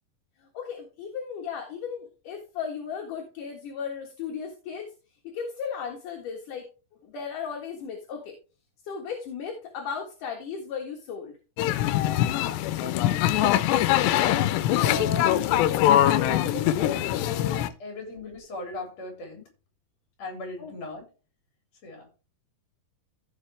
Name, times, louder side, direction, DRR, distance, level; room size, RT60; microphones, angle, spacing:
voice 1, 0.4-4.9 5.2-6.6 7.0-8.4 8.9-11.4 20.6-20.7, left 6 dB, 60° left, 1 dB, 2.6 m, -36 dB
sound 1, 11.6-17.7, left 12 dB, 85° left, 2.7 m, -23 dB
voice 2, 14.8-15.8 16.2-19.5 20.2-21.1 21.8-22.2, left 2 dB, 40° left, 1 dB, 4.3 m, -38 dB
14.5 x 5.8 x 3.4 m, 0.34 s
omnidirectional pair, 5.0 m